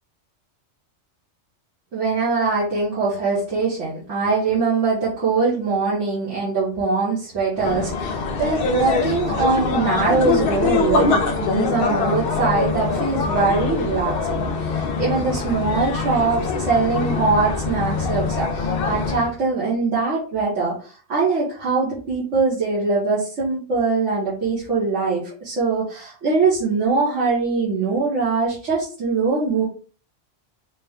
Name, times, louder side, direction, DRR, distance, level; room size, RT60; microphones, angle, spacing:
voice 1, 1.9-29.6, right 4 dB, 80° right, -8 dB, 1.6 m, -22 dB
sound 1, 7.5-19.3, left 4 dB, 60° left, 0.8 m, -23 dB
4.2 x 2.2 x 3.5 m, 0.40 s
omnidirectional pair, 1.2 m